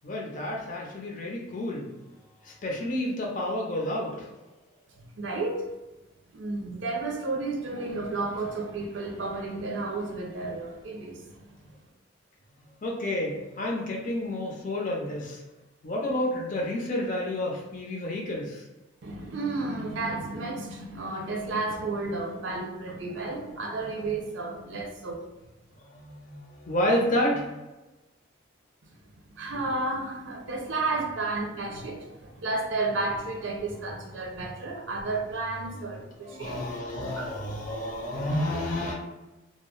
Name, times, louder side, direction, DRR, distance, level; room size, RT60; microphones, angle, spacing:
voice 1, 0.0-1.9 2.4-4.3 12.8-15.4 15.8-18.6 25.9-27.6 36.2-38.9, left 1 dB, 40° left, -2 dB, 0.6 m, -30 dB
voice 2, 5.0-5.7 6.3-11.7 19.0-25.2 28.9-29.0 29.2-36.6 37.1-37.2, right 3 dB, 75° right, 1 dB, 0.6 m, -32 dB
2.3 x 2.0 x 3.7 m, 1.0 s
head